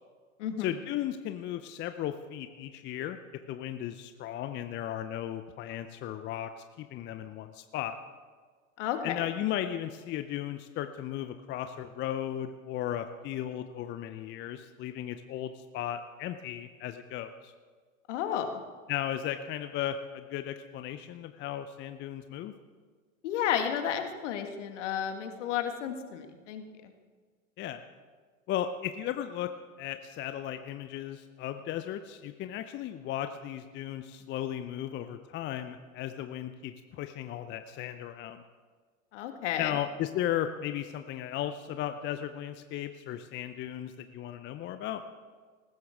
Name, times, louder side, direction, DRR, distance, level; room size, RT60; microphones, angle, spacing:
voice 1, 0.6-3.2 3.5-8.0 9.0-17.5 18.9-22.5 27.6-27.8 28.5-29.5 29.8-38.4 39.6-45.0, left 11 dB, 25° left, 9 dB, 0.6 m, -35 dB
voice 2, 8.8-9.2 18.1-18.6 23.2-26.6 39.1-39.7, left 9 dB, 60° left, 6 dB, 1.7 m, -32 dB
19.5 x 15.5 x 3.6 m, 1.5 s
figure-of-eight pair, 95°, 41 cm